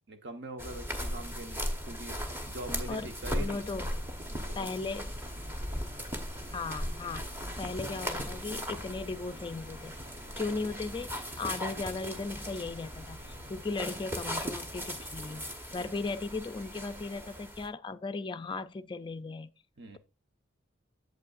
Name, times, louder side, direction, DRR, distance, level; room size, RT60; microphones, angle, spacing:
voice 1, 0.1-3.6 4.3-4.7 15.7-16.0 19.8-20.0, right 1 dB, 60° right, 1.2 m, -43 dB
sound 1, 0.6-17.7, equal, 10° right, 1.0 m, -38 dB
voice 2, 3.4-3.9 4.5-5.1 6.5-7.3 7.6-10.0 10.4-15.4 15.7-19.5, left 3 dB, 25° left, 0.4 m, -37 dB
sound 2, 5.2-15.5, equal, 35° right, 1.1 m, -50 dB
8.3 x 7.7 x 2.5 m
head